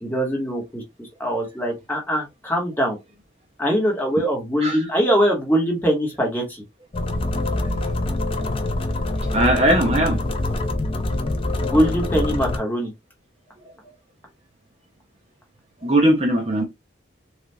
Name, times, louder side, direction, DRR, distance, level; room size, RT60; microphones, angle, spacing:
voice 1, 0.0-3.0 3.6-6.6 11.6-12.9, equal, 10° left, 1.1 m, -22 dB
sound 1, 6.9-12.6, left 2 dB, 30° left, 0.3 m, -25 dB
voice 2, 9.2-10.2 13.6-13.7 15.8-16.6, right 1 dB, 30° right, 0.6 m, -19 dB
3.3 x 2.4 x 2.6 m
head